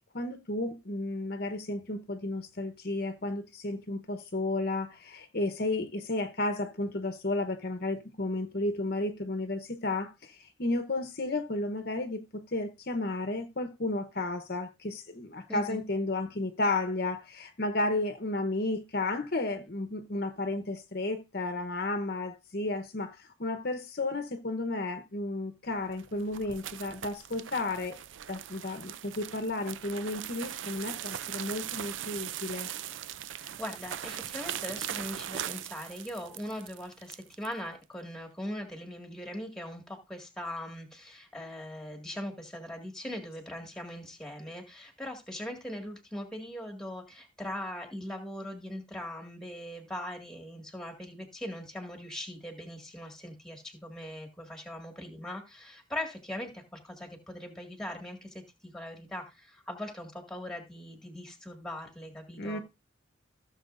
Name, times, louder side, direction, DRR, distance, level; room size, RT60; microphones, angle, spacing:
voice 1, 0.1-28.0 28.3-32.7 62.4-62.6, left 2 dB, 50° left, 0.9 m, -33 dB
voice 2, 15.5-15.8 33.3-62.6, left 1 dB, ahead, 1.9 m, -40 dB
sound 1, 25.8-37.5, right 10 dB, 65° right, 0.4 m, -40 dB
16.0 x 7.1 x 2.5 m
head